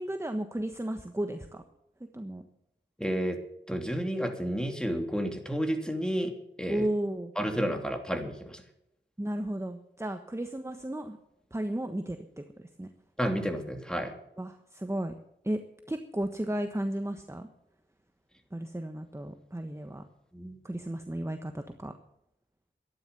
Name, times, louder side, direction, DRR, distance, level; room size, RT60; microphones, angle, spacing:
voice 1, 0.0-1.6 2.1-2.4 6.7-7.3 9.2-11.2 11.5-12.9 14.4-15.1 15.4-15.6 15.9-17.5 18.5-20.0 20.6-21.9, right 1 dB, 15° right, 7 dB, 1.3 m, -34 dB
voice 2, 3.0-3.4 3.7-6.9 7.4-8.6 13.2-14.1 20.3-20.6, equal, 5° left, 4 dB, 3.0 m, -31 dB
13.0 x 10.5 x 6.9 m, 0.81 s
cardioid pair, 45°, 19 cm